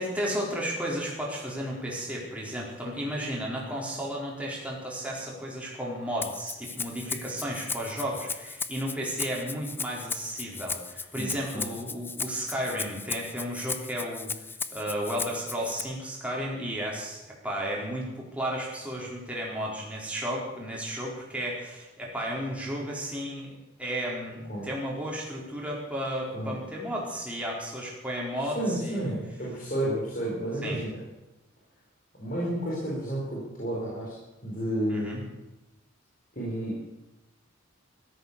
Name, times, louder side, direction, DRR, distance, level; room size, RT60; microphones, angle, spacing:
voice 1, 0.0-14.3 14.7-23.5 23.8-29.1 30.6-30.8 34.9-35.2, equal, 5° right, -3 dB, 4.2 m, -33 dB
Rattle (instrument), 6.2-15.8, left 4 dB, 10° left, 0.5 m, -36 dB
voice 2, 11.1-11.8 24.5-24.7 26.3-26.5 28.5-31.0 32.2-34.2 34.4-35.3 36.3-36.9, right 1 dB, 45° left, -6 dB, 4.6 m, -31 dB
15.0 x 13.0 x 6.9 m, 1.0 s
head